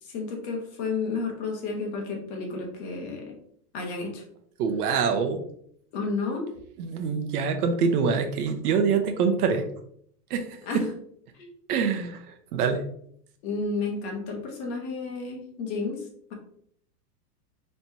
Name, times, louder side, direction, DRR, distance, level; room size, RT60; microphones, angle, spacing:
voice 1, 0.0-3.4 3.7-4.2 5.9-6.5 10.7-10.8 11.3-11.5 13.4-16.3, left 4 dB, 45° left, 1 dB, 1.2 m, -32 dB
voice 2, 4.6-5.4 6.8-9.7 10.3-10.9 11.7-12.8, right 5 dB, 70° right, 5 dB, 0.9 m, -25 dB
4.3 x 3.4 x 2.7 m, 0.65 s
supercardioid pair, 165°, 47 cm